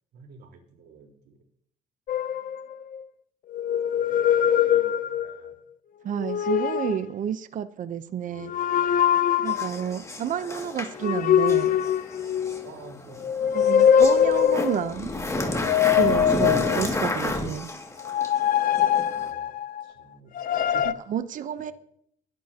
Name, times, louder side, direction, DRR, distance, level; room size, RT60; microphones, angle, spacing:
voice 1, 0.1-1.4 3.9-5.5 6.5-6.6 8.2-9.0 12.6-13.6 16.1-16.3 18.7-18.9 19.2-19.5 19.8-21.1 21.6-21.7, right 5 dB, 80° right, 1 dB, 4.1 m, -50 dB
sound 1, 2.1-3.0 3.5-5.5 6.1-7.1 8.4-9.8 11.0-12.7 13.2-14.9 15.5-17.1 18.0-19.8 20.3-20.9, left 9 dB, 55° left, 0.7 m, -23 dB
voice 2, 6.0-8.5 9.4-11.8 13.5-15.1 16.0-17.7 21.1-21.7, right 9 dB, 50° right, 11 dB, 0.8 m, -30 dB
sound 2, 9.5-19.3, left 2 dB, 15° left, 2.3 m, -32 dB
21.5 x 11.5 x 2.9 m, 0.67 s
cardioid pair, 110°, 17 cm